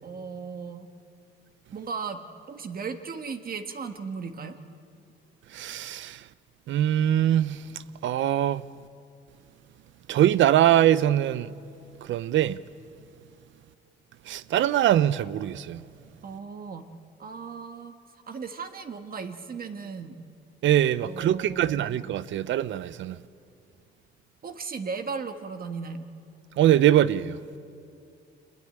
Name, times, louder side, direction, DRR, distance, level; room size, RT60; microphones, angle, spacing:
voice 1, 0.0-0.9 1.7-4.6 16.2-16.9 17.2-17.9 18.3-20.3 21.0-21.9 24.4-26.0, right 5 dB, 45° right, 1.6 m, -36 dB
voice 2, 5.5-6.2 6.7-7.6 8.0-8.6 10.1-11.5 12.1-12.6 14.3-15.8 20.6-23.2 26.6-27.4, right 11 dB, 75° right, 0.7 m, -22 dB
26.0 x 20.5 x 8.9 m
cardioid pair, 90°, 20 cm